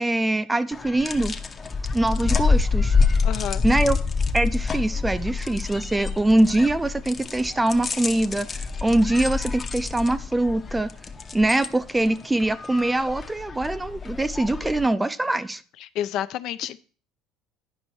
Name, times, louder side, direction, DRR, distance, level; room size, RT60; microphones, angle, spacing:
voice 1, 0.0-1.3 1.9-3.0 3.6-4.0 4.3-10.9 11.3-15.6, right 1 dB, 10° right, 0.4 m, -23 dB
sound 1, 0.7-14.9, left 4 dB, 25° left, 0.7 m, -27 dB
voice 2, 3.2-3.6 15.8-16.8, left 11 dB, 60° left, 0.5 m, -29 dB
10.0 x 5.4 x 4.5 m
cardioid pair, 135°, 0 cm